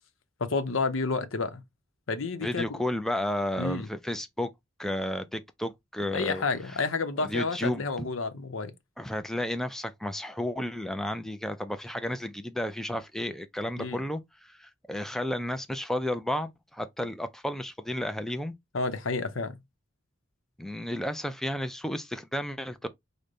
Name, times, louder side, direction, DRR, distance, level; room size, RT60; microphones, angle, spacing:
voice 1, 0.4-1.6 2.1-2.8 3.6-3.9 6.1-8.7 13.8-14.0 18.7-19.6, left 3 dB, 85° left, 0.8 m, -30 dB
voice 2, 2.4-4.5 4.8-6.4 7.2-7.8 9.0-18.5 20.6-22.9, left 1 dB, ahead, 0.3 m, -32 dB
5.1 x 2.1 x 3.9 m
head